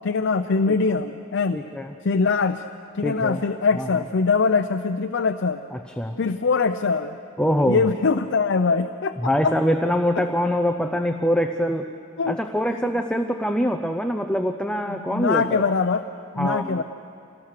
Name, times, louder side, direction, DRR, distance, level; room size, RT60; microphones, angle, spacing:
voice 1, 0.0-1.6 2.0-2.6 2.9-5.6 6.2-7.1 7.7-9.2 9.4-9.5 10.2-10.3 12.2-12.4 12.7-12.9 14.9-16.0 16.3-16.8, left 4 dB, 60° left, 7 dB, 0.6 m, -22 dB
voice 2, 1.5-1.9 3.0-3.4 3.8-3.9 5.7-6.2 7.4-7.8 9.2-11.9 12.3-15.6 16.4-16.8, equal, 5° left, 6 dB, 0.6 m, -24 dB
26.5 x 19.0 x 6.6 m, 2.5 s
head